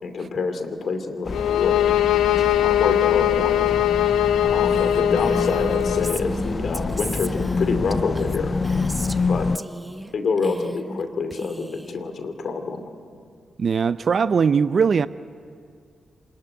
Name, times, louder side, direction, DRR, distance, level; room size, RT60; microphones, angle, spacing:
voice 1, 0.0-1.8 2.6-3.8 4.4-8.6 9.3-9.5 10.1-12.8, left 4 dB, 65° left, 8 dB, 2.7 m, -27 dB
sound 1, 1.3-6.2, left 11 dB, 80° left, 0.8 m, -21 dB
sound 2, 1.3-9.6, left 4 dB, 45° left, 0.6 m, -27 dB
Female speech woman speaking, 4.7-9.3 9.6-10.1 10.4-11.0 11.3-12.0, right 1 dB, 15° right, 1.2 m, -34 dB
voice 2, 13.6-15.1, right 6 dB, 55° right, 15 dB, 0.6 m, -20 dB
26.5 x 20.0 x 9.6 m, 2.2 s
hypercardioid pair, 40°, 0 cm